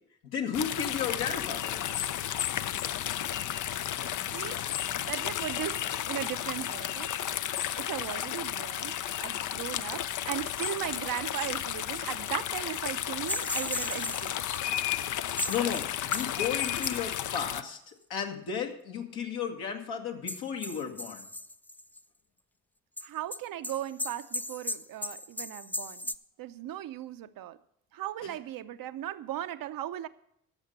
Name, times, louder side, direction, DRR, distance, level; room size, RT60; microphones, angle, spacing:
voice 1, 0.3-1.8 3.1-3.2 15.5-21.2 28.2-28.3, left 7 dB, 65° left, 2 dB, 1.7 m, -34 dB
sound 1, 0.5-17.6, left 11 dB, 50° left, 0.6 m, -33 dB
voice 2, 3.7-4.1 4.3-4.6 5.0-7.1 7.8-14.4 23.0-26.1 26.4-27.6 27.9-30.1, right 12 dB, 55° right, 11 dB, 0.7 m, -37 dB
sound 2, 13.3-14.6 15.0-15.1 15.3-17.7 20.3-22.0 23.0-26.1, left 1 dB, 5° left, 0.4 m, -37 dB
15.0 x 6.5 x 5.4 m, 0.73 s
hypercardioid pair, 45°, 40 cm